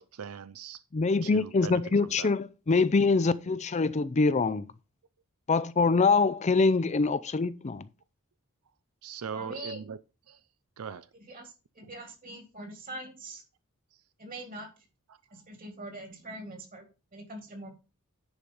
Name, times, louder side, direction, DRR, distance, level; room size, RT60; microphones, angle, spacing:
voice 1, 0.0-0.8 1.2-2.3 9.0-10.0 10.3-10.5 10.8-11.1 11.8-11.9 13.9-14.0 15.1-15.4, right 6 dB, 90° right, 0.5 m, -41 dB
voice 2, 0.9-4.7 5.5-7.9, left 4 dB, 30° left, 0.5 m, -24 dB
voice 3, 9.3-9.8 11.3-13.4 14.2-14.7 15.3-16.8 17.1-17.7, right 1 dB, 40° right, 3.1 m, -42 dB
10.5 x 4.9 x 5.5 m
head